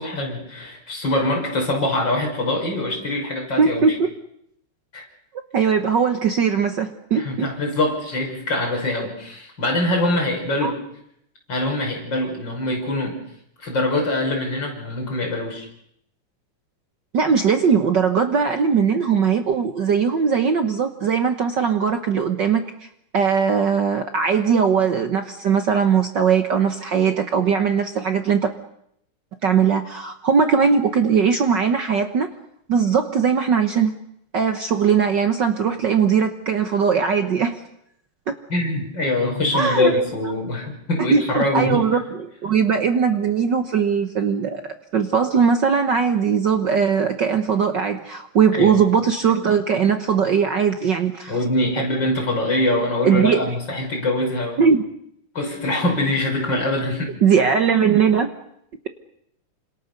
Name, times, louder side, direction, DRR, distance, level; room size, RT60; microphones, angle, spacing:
voice 1, 0.0-3.9 4.9-5.1 7.1-10.7 11.5-13.2 13.6-15.7 38.5-41.8 48.5-48.9 51.3-54.6 55.3-57.1, left 1 dB, 30° left, 1 dB, 6.1 m, -23 dB
voice 2, 3.6-4.1 5.5-7.5 10.6-10.7 17.1-22.6 23.1-28.5 29.4-32.3 32.7-34.0 34.3-37.6 38.3-38.4 39.5-39.9 41.0-44.6 44.9-51.3 53.0-53.5 54.6-54.8 57.2-58.3, right 6 dB, 90° right, 7 dB, 0.9 m, -19 dB
28.5 x 26.5 x 6.8 m, 0.74 s
omnidirectional pair, 3.9 m